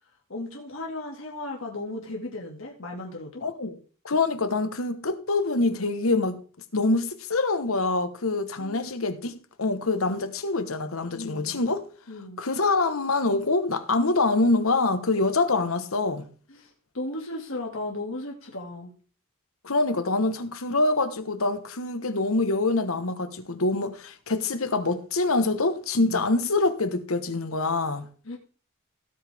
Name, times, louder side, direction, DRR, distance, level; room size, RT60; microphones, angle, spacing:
voice 1, 0.3-3.4 8.6-8.9 11.1-11.6 12.1-12.4 16.5-16.7 16.9-18.9 26.0-26.3 28.2-28.4, left 2 dB, 70° left, 2.3 m, -36 dB
voice 2, 3.4-3.8 4.0-6.4 6.7-11.8 12.4-16.2 19.6-28.1, left 3 dB, 85° left, 1.3 m, -25 dB
16.5 x 8.0 x 3.6 m
head